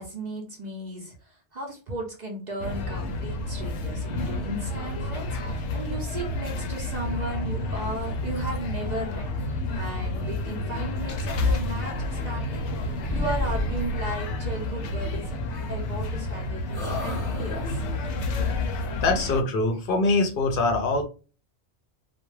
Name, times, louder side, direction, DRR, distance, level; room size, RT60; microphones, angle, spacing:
voice 1, 0.0-9.3 9.7-15.4 15.7-17.8, right 1 dB, 50° right, 0 dB, 0.6 m, -35 dB
Coffee Shop Chatter, 2.6-19.4, left 2 dB, 90° left, 0.9 m, -30 dB
sound 1, 11.9-12.7 13.0-14.2 15.5-16.4 16.7-18.0, left 1 dB, 25° left, 0.7 m, -33 dB
voice 2, 18.6-21.0, left 3 dB, 60° left, 4 dB, 0.7 m, -24 dB
2.3 x 2.1 x 3.0 m, 0.35 s
omnidirectional pair, 1.2 m